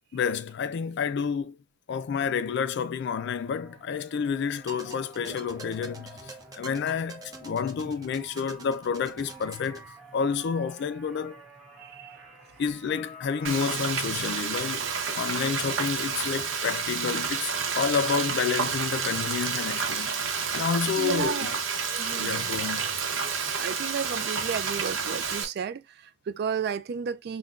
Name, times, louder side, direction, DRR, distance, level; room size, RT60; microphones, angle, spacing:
voice 1, 0.1-1.6 1.9-9.8 10.1-11.4 12.6-14.8 15.1-21.5 22.1-22.9, left 6 dB, 60° left, 0.4 m, -29 dB
sound 1, 3.1-13.7, equal, ahead, 1.3 m, -50 dB
sound 2, 4.5-9.9, right 3 dB, 20° right, 0.7 m, -46 dB
voice 2, 11.8-12.2 21.0-21.5 21.9-22.4 23.6-27.4, right 6 dB, 55° right, 0.3 m, -33 dB
Frying (food), 13.4-25.4, right 6 dB, 80° right, 0.8 m, -30 dB
5.6 x 2.2 x 2.4 m
head